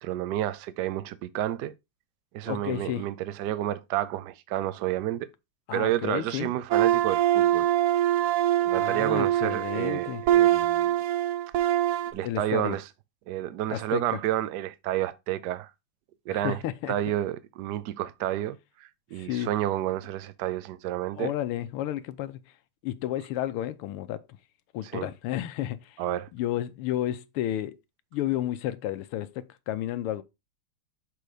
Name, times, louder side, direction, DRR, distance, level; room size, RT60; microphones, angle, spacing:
voice 1, 0.0-1.7 2.3-5.3 5.7-7.7 8.6-11.0 12.1-12.8 13.3-15.7 16.3-16.6 16.9-21.3 24.9-25.1 26.0-26.3, right 13 dB, 70° right, 1.0 m, -30 dB
voice 2, 2.4-3.1 5.7-6.5 8.7-10.2 12.2-12.8 13.7-14.2 16.3-17.0 19.1-19.5 21.1-22.4 22.8-24.2 24.7-26.0 26.3-27.8 28.1-30.2, left 13 dB, 85° left, 1.6 m, -32 dB
sound 1, 6.7-12.1, right 12 dB, 90° right, 0.8 m, -24 dB
6.8 x 3.9 x 4.8 m
omnidirectional pair, 2.4 m